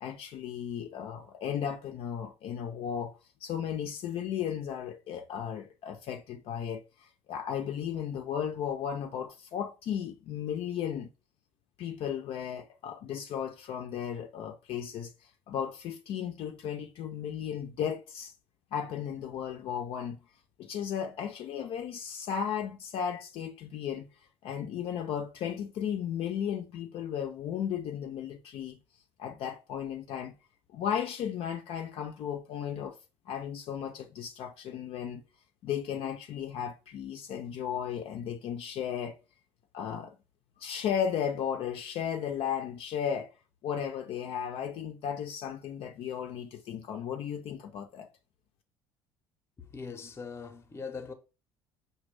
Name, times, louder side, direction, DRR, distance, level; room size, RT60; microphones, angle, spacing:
voice 1, 0.0-11.1 11.8-15.1 15.5-18.3 18.7-20.2 20.6-24.1 24.4-28.8 29.2-30.4 30.7-33.0 33.3-35.2 35.6-39.2 39.7-40.2 40.6-43.3 43.6-48.1, left 8 dB, 60° left, 0.5 m, -35 dB
voice 2, 49.6-51.1, left 5 dB, 25° left, 0.7 m, -41 dB
5.0 x 2.2 x 3.2 m
supercardioid pair, 100°, 11 cm